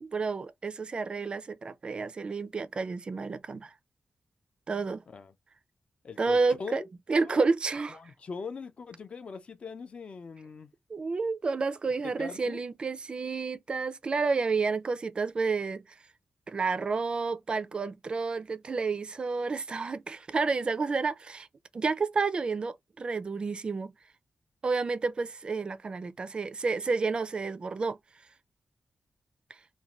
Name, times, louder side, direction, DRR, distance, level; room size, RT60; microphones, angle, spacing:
voice 1, 0.0-3.7 4.7-5.0 6.2-6.8 7.1-8.0 10.9-15.8 16.5-21.5 21.7-23.9 24.6-28.0, right 4 dB, 40° right, 0.3 m, -30 dB
voice 2, 6.0-6.9 7.2-7.5 7.9-10.7 12.0-12.6, left 5 dB, 50° left, 0.5 m, -41 dB
2.5 x 2.2 x 2.8 m
wide cardioid pair, 120°, 3 cm